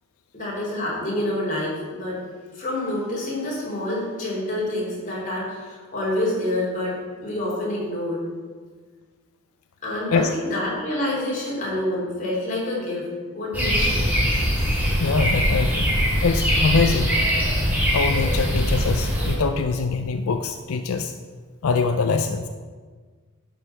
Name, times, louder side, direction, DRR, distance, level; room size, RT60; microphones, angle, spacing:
voice 1, 0.3-2.2 2.5-8.2 9.8-13.1 13.3-14.1, left 1 dB, 35° left, -5 dB, 3.2 m, -27 dB
sound 1, 13.5-19.3, equal, 10° right, 2.6 m, -22 dB
voice 2, 15.0-15.9 16.2-17.1 17.9-21.1 21.6-22.5, left 4 dB, 85° left, 7 dB, 0.5 m, -23 dB
11.0 x 5.3 x 5.6 m, 1.5 s
head